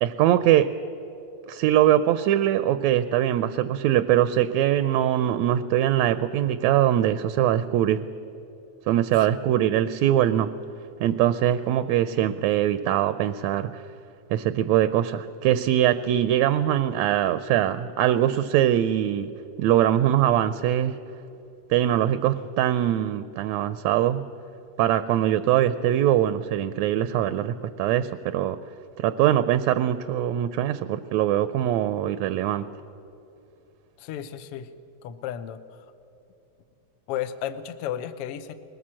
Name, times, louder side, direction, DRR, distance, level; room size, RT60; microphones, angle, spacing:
voice 1, 0.0-0.7 1.5-8.1 8.9-10.5 11.0-13.8 14.3-19.3 19.6-20.9 21.7-24.2 24.8-28.6 29.0-32.7, right 11 dB, 80° right, 12 dB, 1.8 m, -22 dB
voice 2, 34.0-34.7 35.0-35.6 37.1-38.5, left 10 dB, 65° left, 10 dB, 1.6 m, -33 dB
21.5 x 19.0 x 7.5 m, 2.7 s
omnidirectional pair, 3.3 m